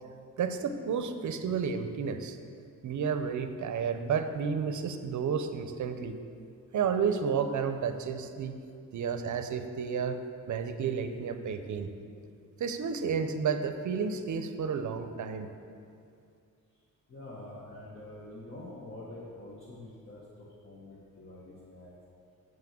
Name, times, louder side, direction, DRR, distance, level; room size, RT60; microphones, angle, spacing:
voice 1, 0.4-2.4 2.8-6.1 6.7-8.6 8.9-10.2 10.5-11.9 12.6-15.5, right 6 dB, 60° right, 9 dB, 0.7 m, -31 dB
voice 2, 17.1-21.9, left 1 dB, 40° left, -7 dB, 1.5 m, -46 dB
7.5 x 6.0 x 7.6 m, 2.4 s
wide cardioid pair, 145°, 33 cm